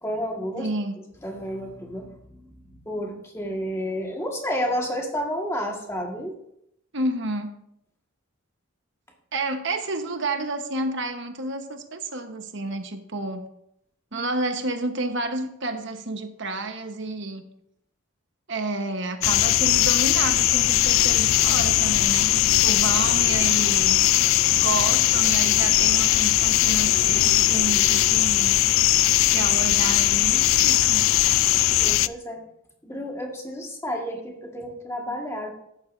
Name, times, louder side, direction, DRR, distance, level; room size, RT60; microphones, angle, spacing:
voice 1, 0.0-0.7 1.2-6.3 31.8-32.4 32.8-35.5, equal, 15° left, 0 dB, 1.7 m, -31 dB
voice 2, 0.6-1.0 6.9-7.6 9.3-13.4 14.1-17.4 18.5-24.0 24.5-28.6 29.2-31.0, right 2 dB, 55° right, 6 dB, 1.2 m, -30 dB
sound 1, 19.2-32.1, left 14 dB, 70° left, 0.3 m, -20 dB
14.0 x 10.5 x 2.7 m, 0.77 s
head